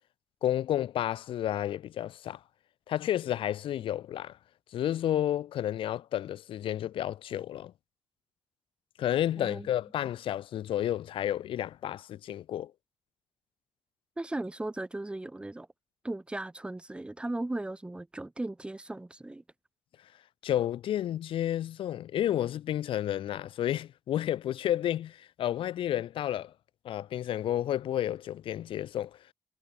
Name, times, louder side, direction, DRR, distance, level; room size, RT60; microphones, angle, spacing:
voice 1, 0.4-2.4 2.9-4.4 4.7-7.7 9.0-12.7 20.4-26.5 26.8-29.2, left 11 dB, 65° left, 1.1 m, -31 dB
voice 2, 9.4-9.7 14.2-15.7 16.0-19.4, right 2 dB, 10° right, 1.5 m, -37 dB
cardioid pair, 100°, 10 cm